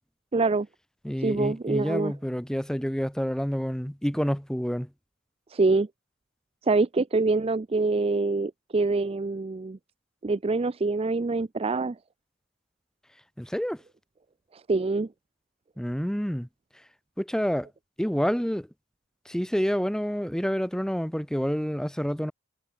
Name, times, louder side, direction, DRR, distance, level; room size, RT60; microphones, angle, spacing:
voice 1, 0.3-0.7 1.2-2.1 5.5-5.9 6.6-9.8 10.2-12.0 14.5-15.1, right 3 dB, 25° right, 0.4 m, -25 dB
voice 2, 1.0-4.9 13.4-13.8 15.8-16.5 17.2-17.7 18.0-18.7 19.2-22.3, equal, 5° left, 1.1 m, -28 dB
head